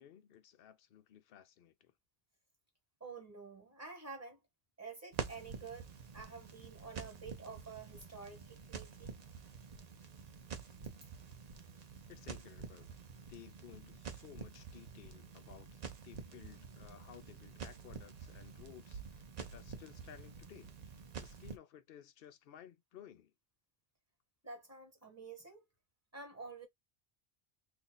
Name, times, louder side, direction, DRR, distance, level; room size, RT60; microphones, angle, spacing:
voice 1, 0.0-1.9 12.1-12.9 13.2-23.3, left 10 dB, 60° left, 0.8 m, -57 dB
voice 2, 3.0-4.4 4.8-9.2 24.4-25.6 26.1-26.7, right 4 dB, 15° right, 1.5 m, -49 dB
Crackle, 5.1-21.6, right 6 dB, 45° right, 0.6 m, -48 dB
2.7 x 2.6 x 3.8 m
omnidirectional pair, 1.1 m